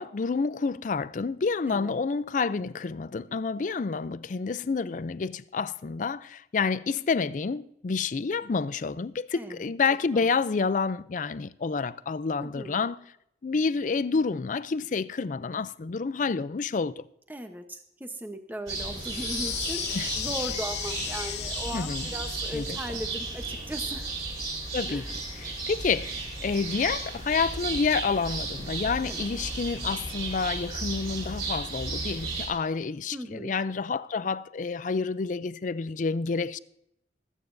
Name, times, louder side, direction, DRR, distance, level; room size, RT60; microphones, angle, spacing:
voice 1, 0.0-13.0 13.4-17.1 19.9-20.1 21.7-22.1 22.5-22.8 24.7-25.0 25.4-36.6, left 4 dB, 45° left, 0.4 m, -29 dB
voice 2, 1.7-2.0 9.3-9.7 10.1-10.3 12.4-12.8 17.3-24.1 24.9-25.1 29.0-29.3 33.1-33.5, right 1 dB, 10° right, 0.9 m, -38 dB
sound 1, 18.7-32.5, right 3 dB, 35° right, 6.0 m, -34 dB
sound 2, 18.9-23.0, left 12 dB, 75° left, 0.7 m, -36 dB
25.0 x 9.1 x 2.6 m
head